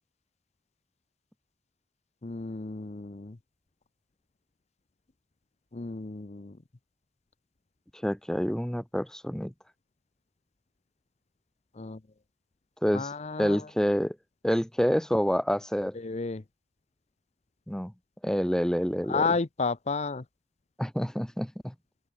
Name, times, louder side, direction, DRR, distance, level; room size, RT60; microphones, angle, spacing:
voice 1, 2.2-3.4 5.7-6.6 11.7-12.0 12.9-13.7 15.9-16.4 19.1-20.2, left 4 dB, 35° left, 0.7 m, -32 dB
voice 2, 8.0-9.5 12.8-13.1 13.4-14.2 14.4-16.0 17.7-17.9 18.2-19.2 20.8-21.7, equal, 5° left, 0.9 m, -27 dB
open air
head